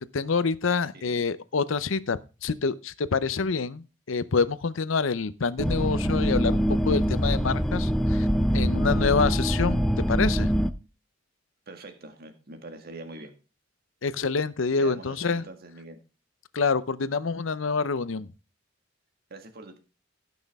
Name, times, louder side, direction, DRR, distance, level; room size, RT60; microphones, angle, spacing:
voice 1, 0.0-8.3 8.5-10.5 14.0-15.4 16.5-18.3, left 4 dB, 85° left, 0.7 m, -27 dB
sound 1, 5.6-10.7, equal, ahead, 0.5 m, -24 dB
voice 2, 11.7-13.3 14.8-16.0 19.3-19.8, right 2 dB, 50° right, 1.8 m, -43 dB
17.0 x 6.2 x 3.5 m
head